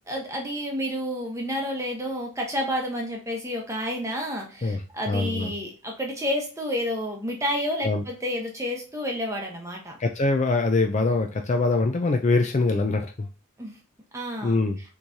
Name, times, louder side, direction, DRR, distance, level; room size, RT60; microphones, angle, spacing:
voice 1, 0.1-10.0 13.6-13.8 14.1-14.6, equal, 15° right, 0 dB, 0.9 m, -30 dB
voice 2, 5.1-5.5 7.8-8.0 10.0-13.3 14.4-14.8, left 3 dB, 30° left, 5 dB, 0.4 m, -23 dB
5.9 x 3.1 x 2.7 m, 0.32 s
head